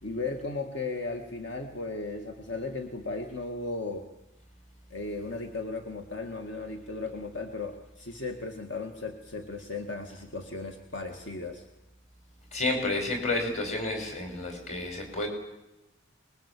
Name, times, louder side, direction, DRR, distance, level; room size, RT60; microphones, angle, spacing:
voice 1, 0.0-4.1 4.9-11.7, left 3 dB, 65° left, 4 dB, 2.0 m, -36 dB
voice 2, 12.5-15.3, left 2 dB, 35° left, 4 dB, 5.9 m, -30 dB
24.5 x 21.5 x 8.4 m, 0.97 s
head